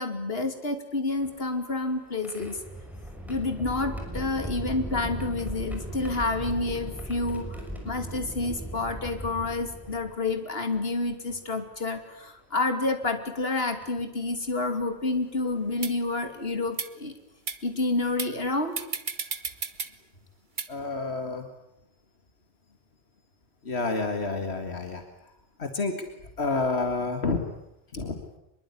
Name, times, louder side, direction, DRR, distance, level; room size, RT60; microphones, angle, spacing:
voice 1, 0.0-2.6 3.3-17.1 17.6-18.8, left 3 dB, 70° left, 7 dB, 3.0 m, -29 dB
sound 1, 1.1-10.4 11.3-11.4 12.8-13.1 13.8-14.0 15.6-15.7 16.1-16.4, equal, ahead, 6.2 m, -38 dB
sound 2, 15.2-15.3 15.8-15.9 16.7-16.9 17.5-17.6 18.2-18.3 18.8-19.9 20.6-20.7, right 5 dB, 50° right, 1.5 m, -32 dB
voice 2, 20.7-21.5 23.6-25.0 25.6-26.1 26.4-27.4 27.9-28.2, left 3 dB, 85° left, 6 dB, 2.3 m, -29 dB
24.5 x 22.5 x 9.8 m, 0.86 s
omnidirectional pair, 1.1 m